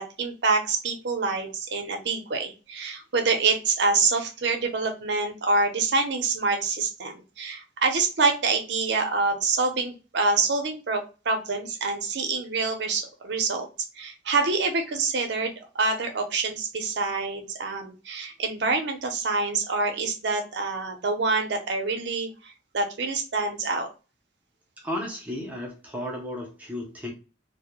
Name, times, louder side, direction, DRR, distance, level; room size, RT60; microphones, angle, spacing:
voice 1, 0.0-13.7 13.9-23.9, right 3 dB, 65° right, 5 dB, 0.5 m, -26 dB
voice 2, 24.8-27.1, left 1 dB, 10° right, -1 dB, 0.5 m, -33 dB
2.2 x 2.0 x 2.8 m, 0.33 s
head